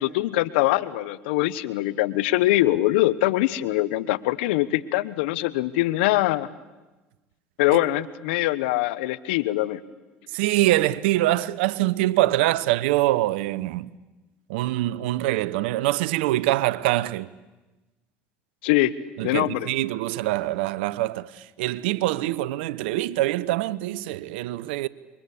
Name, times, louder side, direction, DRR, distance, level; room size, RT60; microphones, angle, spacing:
voice 1, 0.0-6.5 7.6-9.8 18.6-18.9 19.2-19.7, left 17 dB, 80° left, 1.1 m, -23 dB
voice 2, 10.3-13.9 14.5-17.3 19.2-24.9, right 16 dB, 80° right, 0.8 m, -24 dB
27.5 x 23.0 x 8.6 m
hypercardioid pair, 75°, 6 cm